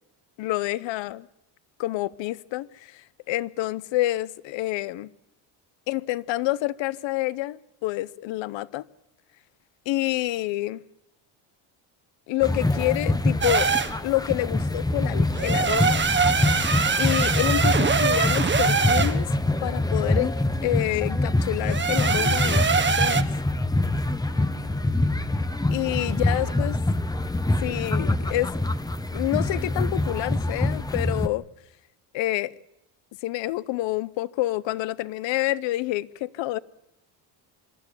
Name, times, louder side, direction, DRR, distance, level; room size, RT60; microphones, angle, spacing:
voice 1, 0.4-1.3 1.8-5.1 5.9-8.9 9.9-10.8 12.3-13.7 14.0-16.0 17.0-19.3 19.6-20.3 20.6-23.2 25.7-26.8 27.6-28.5 29.1-31.4 32.1-32.5 33.2-36.6, left 17 dB, 75° left, 0.9 m, -28 dB
Sehusa Fest Medieval Crowd, 12.4-31.3, left 2 dB, 10° left, 1.1 m, -25 dB
sound 1, 13.4-13.9 15.3-19.2 21.7-23.2, right 5 dB, 25° right, 1.3 m, -23 dB
voice 2, 24.3-25.2 25.8-26.6, right 8 dB, 55° right, 3.0 m, -46 dB
26.0 x 12.5 x 9.9 m
cardioid pair, 100°, 45 cm